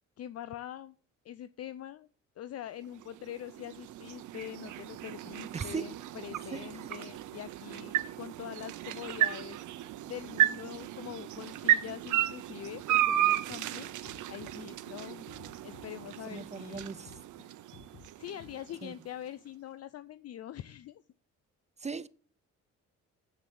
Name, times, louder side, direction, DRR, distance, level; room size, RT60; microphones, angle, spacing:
voice 1, 0.2-0.9 1.2-2.1 2.4-9.6 10.1-13.9 14.3-15.3 15.6-16.9 18.2-21.0, left 11 dB, 55° left, 0.5 m, -44 dB
sound 1, 2.8-19.0, right 13 dB, 80° right, 0.8 m, -34 dB
voice 2, 5.5-6.0 6.5-6.7 16.3-17.1 18.8-18.9 21.8-22.1, right 5 dB, 25° right, 0.5 m, -38 dB
sound 2, 14.1-16.4 16.7-19.1, left 7 dB, 90° left, 1.6 m, -54 dB
8.1 x 7.9 x 7.1 m
cardioid pair, 90°, 30 cm